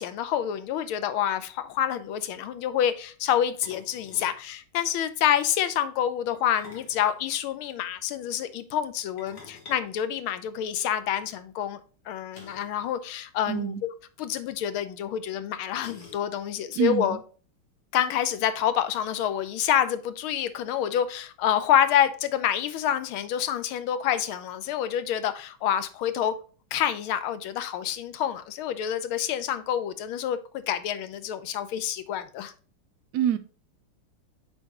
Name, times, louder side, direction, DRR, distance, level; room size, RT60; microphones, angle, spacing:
voice 1, 0.0-11.8 12.1-13.7 14.2-17.2 17.9-26.4 26.7-32.5, left 10 dB, 80° left, 1.5 m, -27 dB
sound 1, 1.3-1.4 1.6-1.8 3.6-4.4 6.3-7.8 9.2-10.8 12.3-12.8 13.1-13.2 13.5-13.7 14.7-14.8 15.7-16.5, left 4 dB, 55° left, 2.2 m, -49 dB
voice 2, 13.5-13.8 16.7-17.2 33.1-33.4, right 10 dB, 85° right, 0.8 m, -26 dB
7.7 x 4.5 x 2.9 m
omnidirectional pair, 2.3 m